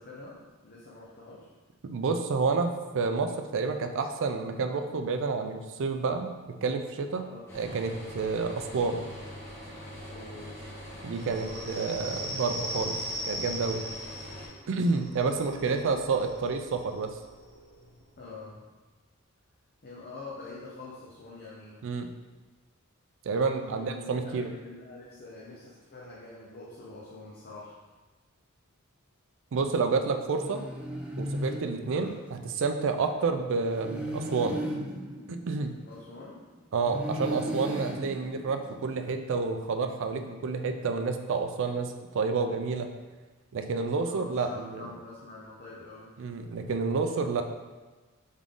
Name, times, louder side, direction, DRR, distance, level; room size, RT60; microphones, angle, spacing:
voice 1, 0.0-1.5 7.2-7.5 10.1-10.6 11.3-11.7 15.2-15.9 18.2-18.6 19.8-21.8 23.3-27.7 31.8-32.1 35.8-36.4 44.0-46.1, left 2 dB, 45° left, -6 dB, 0.7 m, -45 dB
voice 2, 1.8-7.3 7.5-9.1 11.0-13.0 13.2-13.8 14.7-17.1 21.8-22.1 23.2-24.5 29.5-30.6 31.2-34.6 35.3-35.7 36.7-42.9 43.5-44.9 46.2-47.4, right 4 dB, 60° right, 6 dB, 0.4 m, -29 dB
sound 1, 7.5-14.5, equal, 10° left, 1.2 m, -43 dB
sound 2, 11.2-18.5, equal, 35° right, 1.1 m, -40 dB
sound 3, 30.3-32.5 33.6-36.3 36.8-39.1, equal, 5° right, 0.5 m, -36 dB
3.7 x 3.6 x 3.6 m, 1.3 s
head